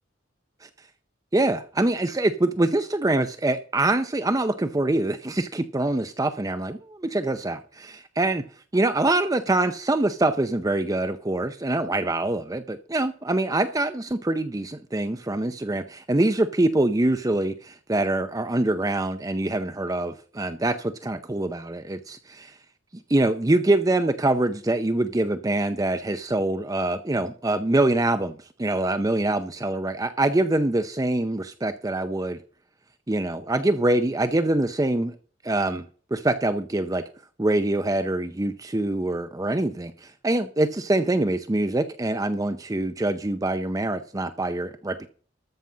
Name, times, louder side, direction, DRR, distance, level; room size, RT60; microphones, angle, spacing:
voice 1, 1.3-8.4 8.7-22.5 23.1-32.4 33.1-35.1 35.4-35.9 36.1-37.0 37.4-45.1, right 2 dB, 20° right, 0.6 m, -24 dB
13.5 x 5.3 x 7.3 m
head